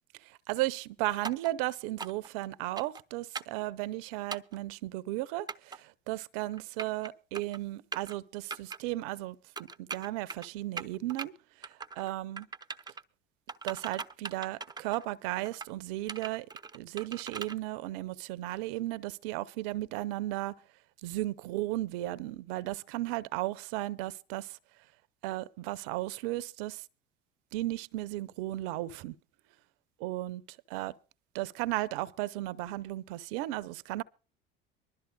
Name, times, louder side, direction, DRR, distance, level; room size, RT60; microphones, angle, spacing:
voice 1, 0.5-9.4 9.8-11.3 12.0-12.5 13.6-16.5 16.7-20.6 21.0-24.6 25.2-26.8 27.5-29.1 30.0-30.4 30.7-30.9 31.3-34.0, right 17 dB, 65° right, 0.7 m, -35 dB
sound 1, 1.2-1.5 2.0-2.3 2.8-3.0 3.3-3.6 4.3-4.6 5.5-5.8 6.5-7.1 7.3-7.6 7.9-8.1 8.5-8.8 9.6-10.5 10.8-11.3 11.6-12.1 12.4-13.0 13.5-15.1 15.4-15.7 16.1-17.6, right 4 dB, 15° right, 0.7 m, -40 dB
24.5 x 12.5 x 2.2 m
hypercardioid pair, 60°, 29 cm